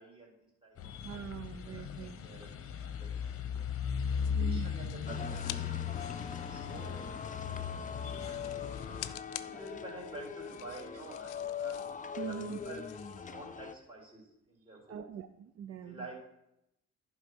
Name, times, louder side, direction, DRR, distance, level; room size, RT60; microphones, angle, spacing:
voice 1, 0.0-0.9 1.7-1.9 2.2-3.7 4.3-6.0 6.4-7.0 7.4-8.7 9.3-11.8 12.2-12.4 12.6-12.8 13.1-15.0 15.8-16.4, right 2 dB, 15° right, -3 dB, 3.6 m, -49 dB
sound 1, 0.8-9.1, left 7 dB, 50° left, 0.9 m, -37 dB
voice 2, 1.0-2.2 4.3-4.7 12.2-12.6 14.7-16.1, right 8 dB, 55° right, 9 dB, 0.5 m, -42 dB
sound 2, 4.2-5.6 6.0-13.3, left 15 dB, 90° left, 0.5 m, -49 dB
sound 3, 5.1-13.7, left 7 dB, 25° left, 0.6 m, -42 dB
10.5 x 4.1 x 6.0 m, 0.82 s
cardioid pair, 90°, 30 cm